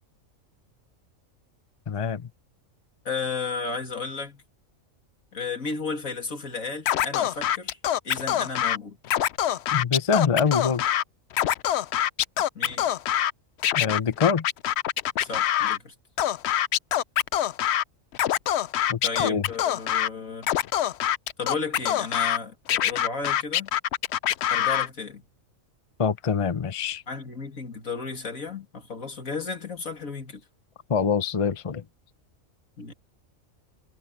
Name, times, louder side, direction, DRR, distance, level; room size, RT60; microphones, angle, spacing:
voice 1, 1.9-2.2 9.7-10.8 13.7-14.4 18.9-19.4 26.0-27.0 30.9-31.8, left 6 dB, 30° left, 0.7 m, -25 dB
voice 2, 3.0-4.4 5.3-7.8 8.0-9.0 12.5-12.9 15.2-15.9 19.0-20.5 21.4-23.7 24.5-25.2 27.1-30.4 32.8-32.9, left 4 dB, 85° left, 3.0 m, -33 dB
Scratching (performance technique), 6.9-8.8 9.0-11.0 11.3-13.3 13.6-15.8 16.2-17.8 18.1-20.1 20.4-22.4 22.7-24.9, left 11 dB, 65° left, 0.8 m, -24 dB
omnidirectional pair, 1.4 m